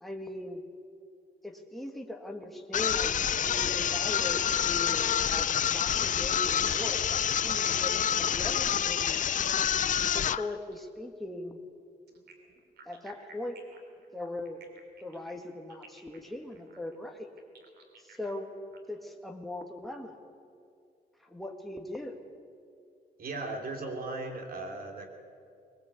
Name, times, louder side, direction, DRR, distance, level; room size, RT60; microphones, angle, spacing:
voice 1, 0.0-0.6 1.4-9.3 10.1-11.6 12.9-13.6 14.1-14.6 15.0-17.3 18.0-18.5 18.9-20.2 21.2-22.2, left 1 dB, ahead, 2 dB, 1.9 m, -40 dB
sound 1, 2.7-10.5, left 9 dB, 50° left, 0.5 m, -27 dB
sound 2, 4.1-10.8 12.1-18.8, right 5 dB, 85° right, 3.3 m, -55 dB
voice 2, 23.2-25.1, right 2 dB, 65° right, 3 dB, 3.2 m, -37 dB
20.5 x 19.5 x 8.4 m, 2.3 s
cardioid pair, 110°, 17 cm